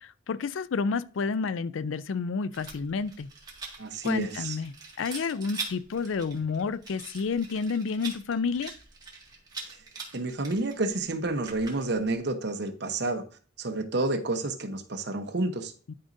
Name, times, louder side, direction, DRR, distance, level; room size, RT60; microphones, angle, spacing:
voice 1, 0.0-3.3 4.0-8.7 15.9-16.0, left 5 dB, 85° left, 0.4 m, -30 dB
Rattle, 2.5-12.1, right 4 dB, 20° right, 1.9 m, -43 dB
voice 2, 3.8-4.6 10.1-13.2 13.6-15.7, right 2 dB, 60° right, 0.9 m, -29 dB
11.5 x 5.2 x 2.6 m
head